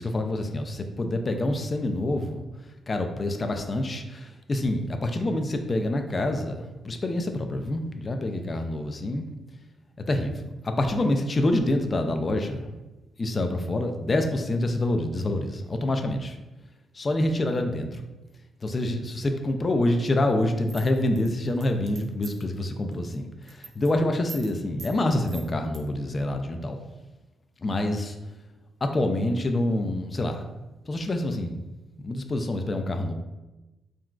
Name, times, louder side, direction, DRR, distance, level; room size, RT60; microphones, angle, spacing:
voice 1, 0.0-2.4 2.9-9.3 10.1-12.7 13.2-16.4 16.9-18.0 18.6-26.8 27.6-28.2 28.8-30.4 30.9-31.6 32.0-33.1, left 1 dB, 35° left, 5 dB, 0.3 m, -27 dB
sound 1, 20.7-22.5 22.9-23.2 23.4-23.9 24.3-24.5 24.8-24.9 25.3-25.8, right 5 dB, 65° right, 0.4 m, -43 dB
3.7 x 2.2 x 2.3 m, 1.1 s
cardioid pair, 75°, 0 cm